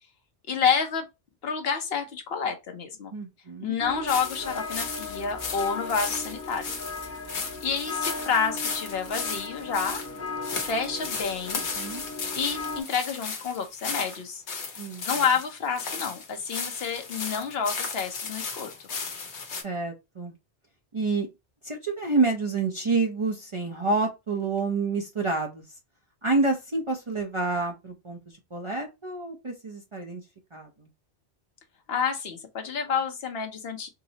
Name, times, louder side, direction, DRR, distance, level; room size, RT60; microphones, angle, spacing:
voice 1, 0.5-1.1 1.4-3.1 3.6-6.7 7.6-10.0 10.6-11.7 12.3-14.4 15.0-18.7 31.9-33.9, left 6 dB, 65° left, 0.9 m, -29 dB
voice 2, 3.1-3.8 7.3-7.5 11.8-12.0 14.8-15.1 19.6-20.3 20.9-21.3 21.6-25.6 26.2-28.2 28.5-30.2 30.5-30.9, right 3 dB, 35° right, 0.5 m, -28 dB
sound 1, 3.8-12.8, left 3 dB, 20° left, 0.4 m, -37 dB
sound 2, 4.1-19.6, left 5 dB, 85° left, 1.1 m, -35 dB
4.7 x 2.0 x 2.7 m
omnidirectional pair, 1.1 m